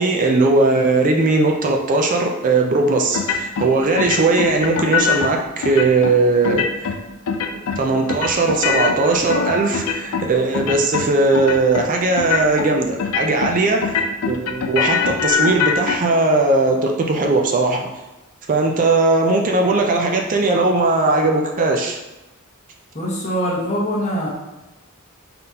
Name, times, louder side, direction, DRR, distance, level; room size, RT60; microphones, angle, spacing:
voice 1, 0.0-6.6 7.8-14.0 14.3-17.9 18.5-22.0, right 3 dB, 40° right, 1 dB, 0.4 m, -18 dB
sound 1, 3.1-3.7 4.0-5.3 5.6-6.1 6.4-7.0 7.3-7.8 8.1-10.3 10.5-11.1 11.3-11.9 12.2-12.7 13.0-13.5 13.8-16.0, left 6 dB, 75° left, 0.4 m, -22 dB
voice 2, 22.9-24.3, equal, 35° left, -6 dB, 1.1 m, -23 dB
3.8 x 3.7 x 2.8 m, 1.0 s
head